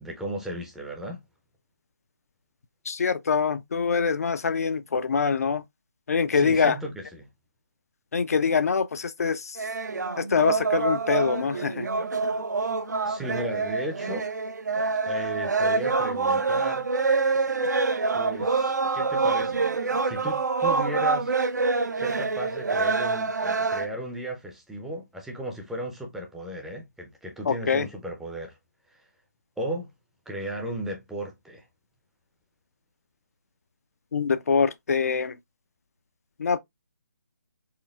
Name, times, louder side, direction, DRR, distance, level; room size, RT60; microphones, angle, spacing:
voice 1, 0.0-1.2 6.3-7.3 13.0-14.3 15.1-16.9 18.1-19.6 20.0-21.3 21.9-28.6 28.9-29.1 29.6-29.9 30.3-31.7, right 1 dB, 5° right, 0.5 m, -35 dB
voice 2, 2.9-5.6 6.1-6.8 8.1-9.6 10.2-11.9 27.5-27.9 34.1-35.3 36.4-36.6, left 5 dB, 55° left, 0.4 m, -24 dB
sound 1, 9.6-23.9, right 4 dB, 70° right, 0.6 m, -26 dB
4.4 x 3.2 x 2.3 m
figure-of-eight pair, 150°, 10 cm